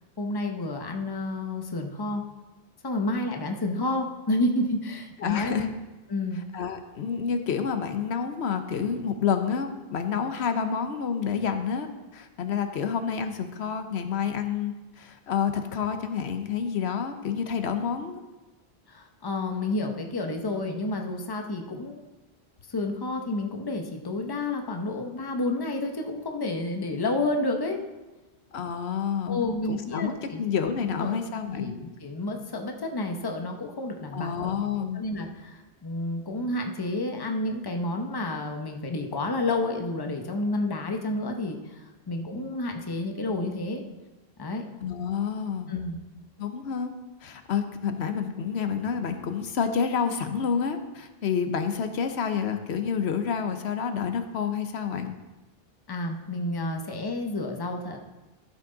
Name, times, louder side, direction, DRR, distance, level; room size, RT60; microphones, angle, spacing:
voice 1, 0.2-2.2 2.8-5.5 6.1-6.4 18.9-22.0 22.7-27.8 29.3-30.4 31.0-31.2 31.5-34.5 34.9-43.8 44.4-44.6 45.7-46.0 55.9-58.0, left 2 dB, 25° left, 4 dB, 0.8 m, -30 dB
voice 2, 5.2-5.7 6.5-18.2 28.5-31.7 34.1-35.0 44.8-45.7 46.4-46.9 47.2-55.1, left 7 dB, 85° left, 7 dB, 1.0 m, -29 dB
13.5 x 6.0 x 3.9 m, 1.1 s
omnidirectional pair, 1.1 m